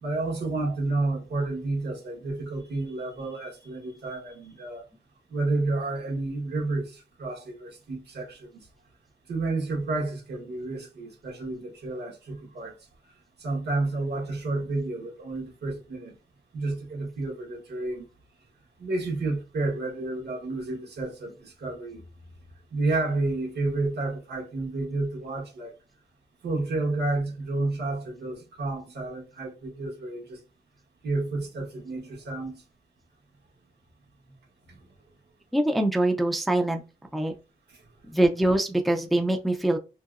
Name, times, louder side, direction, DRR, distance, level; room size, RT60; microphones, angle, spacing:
voice 1, 0.0-4.8 5.3-8.7 9.3-12.7 13.4-16.1 16.5-18.1 18.8-22.0 22.7-25.7 26.4-30.4 31.0-32.6 34.7-34.8 37.7-37.8, right 2 dB, 85° right, 1.1 m, -30 dB
voice 2, 35.5-36.8 37.1-37.3 38.1-39.8, right 1 dB, ahead, 0.3 m, -23 dB
2.9 x 2.7 x 2.3 m
wide cardioid pair, 145°, 17 cm